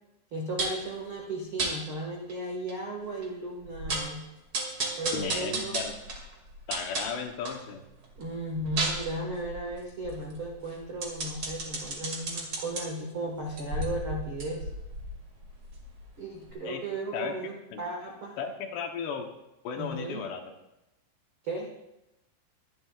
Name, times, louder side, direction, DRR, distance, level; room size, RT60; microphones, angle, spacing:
voice 1, 0.3-4.2 5.0-5.8 8.1-14.7 16.2-18.3 19.7-20.2 21.4-21.7, right 2 dB, 70° right, -1 dB, 1.2 m, -35 dB
sound 1, 0.6-0.9 1.6-1.7 2.3-2.4 2.7-2.8 3.2-3.3 3.6-4.2 4.5-7.6 8.0-12.8 13.4-16.1 16.5-16.6, right 2 dB, 40° right, 2.1 m, -34 dB
voice 2, 5.1-6.0 6.7-7.8 16.6-16.8 17.1-17.3 17.7-17.8 18.4-19.3 19.6-20.4, left 6 dB, 75° left, 4 dB, 2.9 m, -34 dB
22.5 x 11.5 x 2.4 m, 0.94 s
omnidirectional pair, 5.4 m